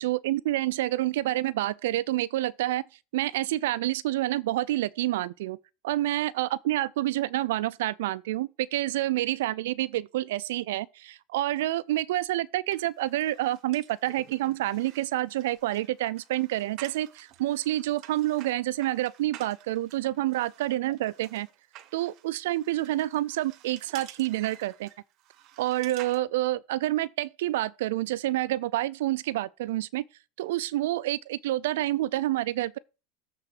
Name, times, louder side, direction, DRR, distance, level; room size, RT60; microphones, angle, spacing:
voice 1, 0.0-2.8 3.1-5.6 5.8-21.5 21.9-24.9 25.6-30.1 30.4-32.8, right 15 dB, 85° right, 0.3 m, -28 dB
sound 1, 12.7-26.2, right 13 dB, 50° right, 0.8 m, -50 dB
7.6 x 3.7 x 6.4 m
supercardioid pair, 125°, 0 cm